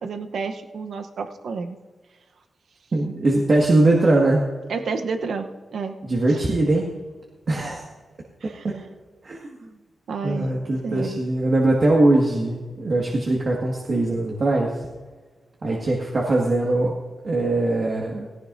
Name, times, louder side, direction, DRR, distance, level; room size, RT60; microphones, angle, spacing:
voice 1, 0.0-1.8 4.7-6.0 6.3-6.4 8.4-8.7 10.1-10.5 10.8-11.2, right 5 dB, 80° right, 6 dB, 0.9 m, -30 dB
voice 2, 2.9-4.4 6.0-6.9 7.5-7.8 8.4-8.7 9.2-9.5 10.2-14.8 15.6-17.0 17.2-18.3, right 2 dB, 50° right, -2 dB, 1.8 m, -21 dB
17.5 x 16.5 x 2.7 m, 1.4 s
wide cardioid pair, 95°, 0 cm